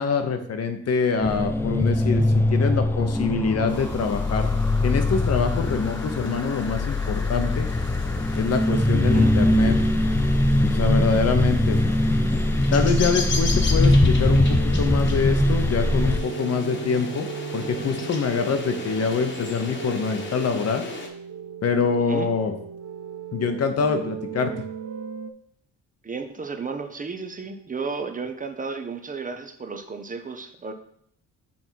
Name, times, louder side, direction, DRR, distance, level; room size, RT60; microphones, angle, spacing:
voice 1, 0.0-2.2 2.5-4.5 4.8-7.7 8.4-9.8 10.7-11.8 12.7-17.3 17.5-20.8 21.6-22.5 23.3-24.5, left 5 dB, 55° left, 7 dB, 0.9 m, -25 dB
sound 1, 1.2-16.2, left 1 dB, 10° left, 0.4 m, -21 dB
sound 2, 3.7-21.1, left 3 dB, 40° left, 1.3 m, -37 dB
sound 3, 13.7-25.3, right 8 dB, 70° right, 0.5 m, -37 dB
voice 2, 26.0-30.7, right 4 dB, 25° right, 6 dB, 0.7 m, -33 dB
5.8 x 4.3 x 4.6 m, 0.66 s
cardioid pair, 90°, 30 cm